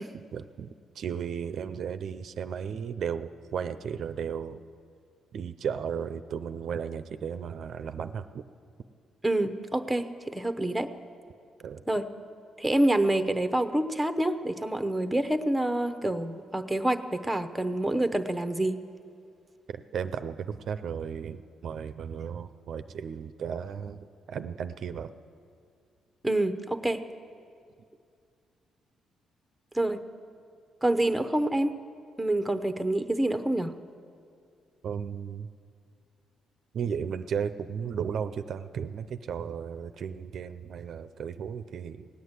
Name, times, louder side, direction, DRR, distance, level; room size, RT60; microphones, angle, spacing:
voice 1, 0.1-4.6 5.3-8.4 11.6-11.8 19.7-25.1 34.8-35.5 36.7-42.1, right 7 dB, 65° right, 10 dB, 0.5 m, -35 dB
voice 2, 9.2-10.9 11.9-12.1 12.6-18.8 26.2-27.0 29.7-30.0 30.8-31.8 32.2-33.7, right 1 dB, 5° right, 8 dB, 0.8 m, -27 dB
17.5 x 9.3 x 8.1 m, 2.3 s
cardioid pair, 90°, 0 cm